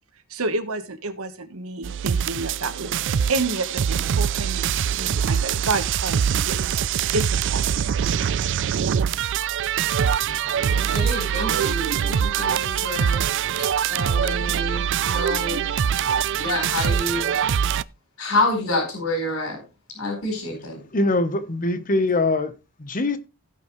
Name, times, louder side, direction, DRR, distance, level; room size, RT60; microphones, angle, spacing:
voice 1, 0.3-7.9, right 3 dB, 85° right, 1.3 m, -30 dB
sound 1, 1.8-17.8, right 8 dB, 60° right, 0.4 m, -23 dB
voice 2, 10.3-13.2 13.9-15.6 16.4-17.3 18.2-19.6 19.9-20.8, left 2 dB, 80° left, 4.4 m, -28 dB
voice 3, 20.9-22.5 22.8-23.2, left 2 dB, 40° left, 1.1 m, -22 dB
16.5 x 5.7 x 3.2 m
head